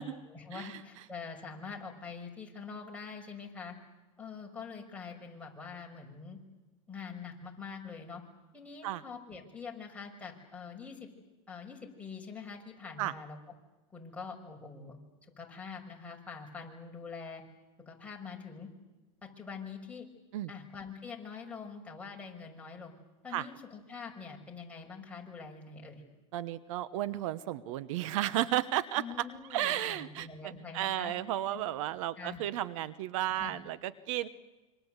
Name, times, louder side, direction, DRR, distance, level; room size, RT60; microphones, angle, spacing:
voice 1, 0.0-3.7 4.2-6.4 6.9-8.2 8.5-11.1 11.5-13.4 13.9-15.0 15.4-17.4 17.9-18.7 19.2-20.1 20.5-22.9 23.2-26.0 29.0-31.1 31.5-31.6 32.2-32.5 33.4-33.6, left 5 dB, 5° left, -1 dB, 6.2 m, -45 dB
voice 2, 26.3-29.0 29.5-34.3, right 13 dB, 65° right, 15 dB, 1.1 m, -33 dB
27.0 x 25.0 x 8.2 m, 1.1 s
hypercardioid pair, 115°, 18 cm